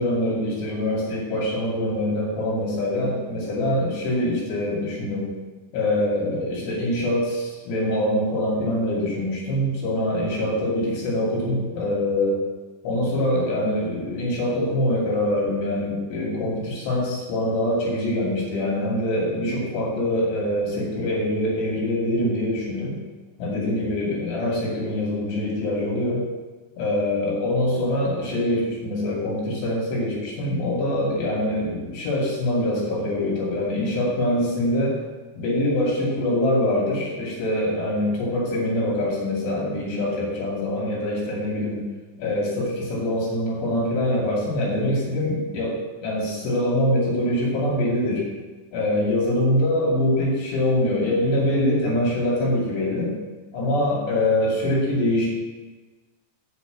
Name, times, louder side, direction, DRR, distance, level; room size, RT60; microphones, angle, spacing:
voice 1, 0.0-5.3 5.7-12.4 12.8-23.0 23.4-26.2 26.8-35.0 35.4-41.9 42.2-48.2 48.7-53.1 53.5-55.3, left 1 dB, 75° left, -4 dB, 4.7 m, -24 dB
8.3 x 6.0 x 8.0 m, 1.3 s
omnidirectional pair, 5.0 m